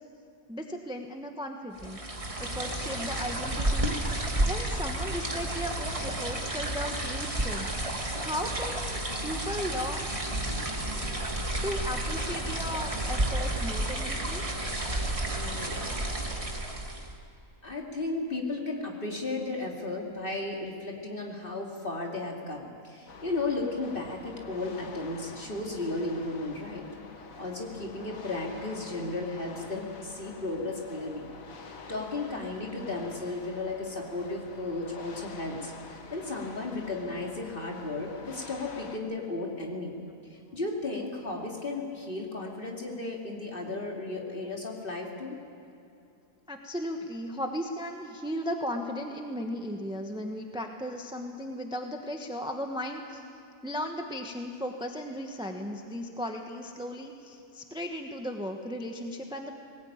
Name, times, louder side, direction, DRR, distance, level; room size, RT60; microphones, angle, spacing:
voice 1, 0.5-2.0 2.4-10.0 11.6-14.4 46.5-53.2 53.6-59.5, equal, 5° right, 3 dB, 1.1 m, -36 dB
sound 1, 1.8-17.2, right 1 dB, 25° right, 1.9 m, -31 dB
voice 2, 15.3-15.9 17.6-26.8 27.4-31.2 31.6-39.9 40.3-45.4, left 2 dB, 40° left, -1 dB, 2.9 m, -34 dB
sound 2, 23.1-39.0, left 4 dB, 70° left, 1.8 m, -47 dB
20.0 x 18.5 x 8.9 m, 2.7 s
omnidirectional pair, 1.5 m